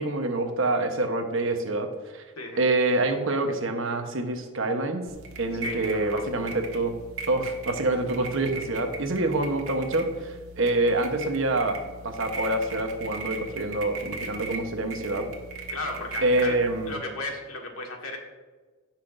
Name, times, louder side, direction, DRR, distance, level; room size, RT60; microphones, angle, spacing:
voice 1, 0.0-2.2 2.6-5.1 5.4-6.9 7.3-15.3 16.2-17.0, right 2 dB, 60° right, 5 dB, 1.1 m, -26 dB
sound 1, 5.1-16.9, right 3 dB, 85° right, 1.4 m, -39 dB
voice 2, 5.6-6.4 15.7-16.6 16.9-18.2, left 2 dB, 80° left, 1 dB, 1.7 m, -35 dB
16.5 x 5.9 x 2.6 m, 1.4 s
head